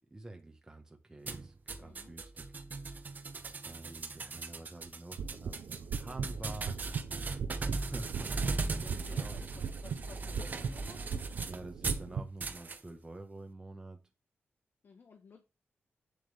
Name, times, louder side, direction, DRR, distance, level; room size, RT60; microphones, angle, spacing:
voice 1, 0.1-2.5 2.8-3.1 3.6-6.8 7.6-9.7 11.4-14.0, right 2 dB, 15° right, 1.4 m, -48 dB
sound 1, 1.3-12.1 12.4-12.8, right 3 dB, 45° right, 1.0 m, -38 dB
voice 2, 1.8-2.1 8.8-11.0 14.8-15.4, left 4 dB, 55° left, 1.4 m, -55 dB
sound 2, 5.2-12.2, right 6 dB, 85° right, 0.8 m, -39 dB
8.6 x 7.7 x 3.5 m
wide cardioid pair, 130°, 4 cm